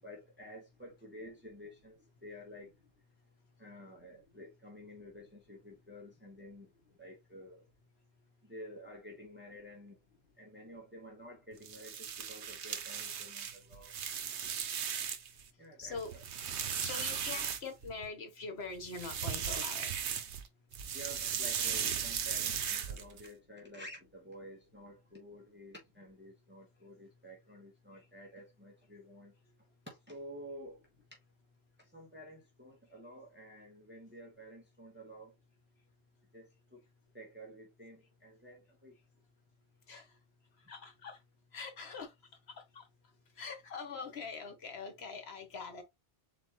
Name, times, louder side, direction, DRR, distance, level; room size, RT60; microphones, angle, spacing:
voice 1, 0.0-2.7 3.6-6.7 7.0-7.6 8.4-10.0 10.4-13.9 15.6-16.0 20.9-29.3 29.9-30.8 31.8-35.3 36.3-36.8 37.1-39.0, equal, 10° right, 1.2 m, -51 dB
sound 1, 11.6-15.4 15.8-18.1 18.8-20.5 20.7-23.3, right 8 dB, 85° right, 1.0 m, -37 dB
voice 2, 15.8-16.2 16.8-20.2 27.9-28.1 39.9-40.2 40.6-41.2 41.5-42.1 42.5-42.9 43.3-45.8, left 4 dB, 70° left, 1.3 m, -44 dB
4.1 x 4.0 x 3.0 m
omnidirectional pair, 1.1 m